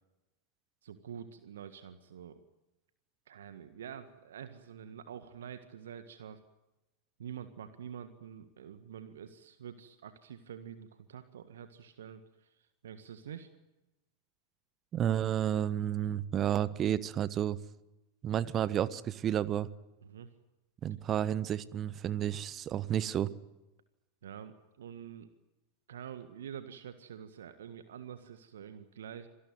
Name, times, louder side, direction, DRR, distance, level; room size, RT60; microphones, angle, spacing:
voice 1, 0.8-2.4 3.3-6.4 7.2-12.5 12.8-13.5 20.0-20.3 24.2-25.3 25.9-29.3, right 8 dB, 60° right, 10 dB, 1.7 m, -47 dB
voice 2, 14.9-17.6 18.2-19.7 20.8-23.3, right 10 dB, 30° right, 18 dB, 1.1 m, -31 dB
26.5 x 18.5 x 9.2 m, 1.0 s
figure-of-eight pair, 90°, 0 cm